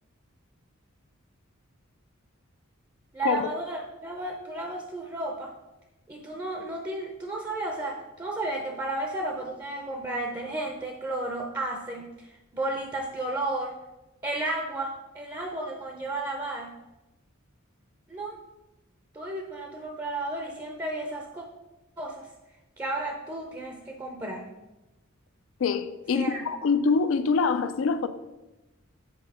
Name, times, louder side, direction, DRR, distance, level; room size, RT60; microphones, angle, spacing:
voice 1, 3.1-5.5 6.1-13.8 14.2-16.7 18.1-18.4 19.1-21.4 22.0-22.3 22.8-24.5 26.1-26.5, right 2 dB, 20° right, 0.6 m, -33 dB
voice 2, 25.6-28.1, left 5 dB, 70° left, 0.4 m, -25 dB
7.6 x 4.2 x 4.8 m
head